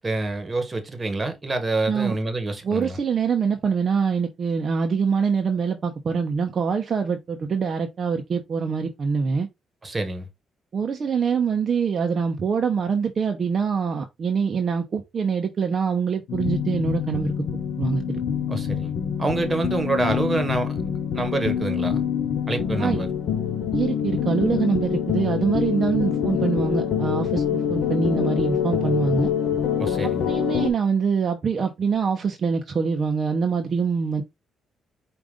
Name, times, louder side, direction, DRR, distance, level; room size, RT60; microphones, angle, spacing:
voice 1, 0.0-3.0 9.8-10.3 18.5-18.9 19.2-20.9 21.1-22.0 22.5-23.1 29.8-30.3, right 2 dB, 25° right, 1.3 m, -26 dB
voice 2, 2.6-9.5 10.7-17.3 17.8-18.0 22.8-23.0 23.7-29.3 30.0-34.2, right 6 dB, 45° right, 0.7 m, -24 dB
sound 1, 16.3-30.7, left 8 dB, 75° left, 0.8 m, -25 dB
4.9 x 2.5 x 3.7 m
cardioid pair, 90°, 0 cm